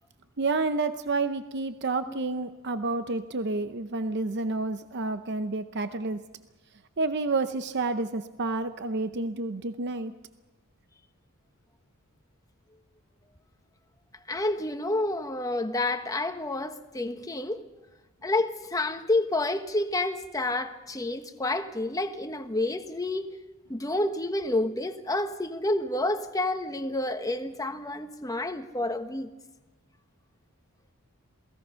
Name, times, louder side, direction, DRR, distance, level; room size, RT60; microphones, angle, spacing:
voice 1, 0.4-6.2 7.0-10.1, right 3 dB, 50° right, 0.7 m, -29 dB
voice 2, 14.3-17.6 18.2-23.3 23.7-29.3, left 2 dB, 15° left, 1.2 m, -29 dB
27.5 x 18.5 x 5.7 m
head